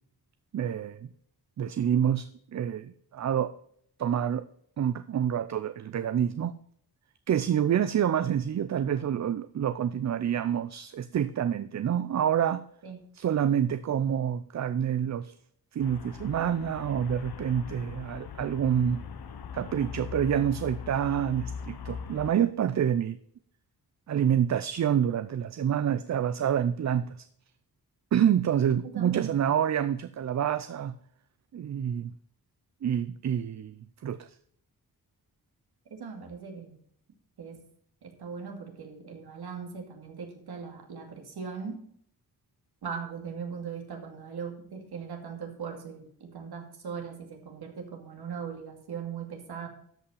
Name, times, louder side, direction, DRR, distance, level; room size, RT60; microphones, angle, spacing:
voice 1, 0.5-1.0 1.6-3.5 4.0-4.4 4.8-6.6 7.3-12.6 13.1-15.3 15.7-19.0 19.5-23.2 24.1-27.3 28.1-31.0 31.5-32.1 32.8-33.8 34.0-34.4, right 9 dB, 45° right, 13 dB, 0.5 m, -27 dB
Traffic noise roadway noise, 15.8-22.4, left 7 dB, 75° left, 1.1 m, -41 dB
voice 2, 28.8-29.4 35.9-36.8 37.4-37.6 38.0-41.8 42.8-49.7, right 6 dB, 80° right, 3 dB, 2.5 m, -39 dB
13.0 x 5.6 x 5.6 m, 0.65 s
wide cardioid pair, 140°, 38 cm